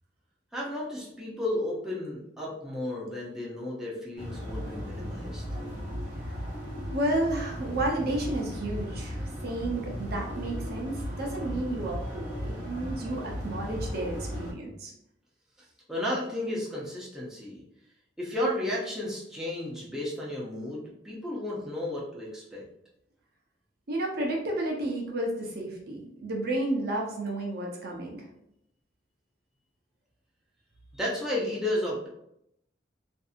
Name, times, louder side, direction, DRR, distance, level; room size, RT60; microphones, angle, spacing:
voice 1, 0.5-5.4 15.9-17.6 18.2-22.6 30.9-32.1, left 1 dB, 5° right, -6 dB, 0.6 m, -33 dB
sound 1, 4.2-14.5, equal, 70° left, 0.9 m, -36 dB
voice 2, 6.9-14.9 23.9-28.3, right 1 dB, 55° right, 0 dB, 0.7 m, -32 dB
2.7 x 2.6 x 2.4 m, 0.77 s
head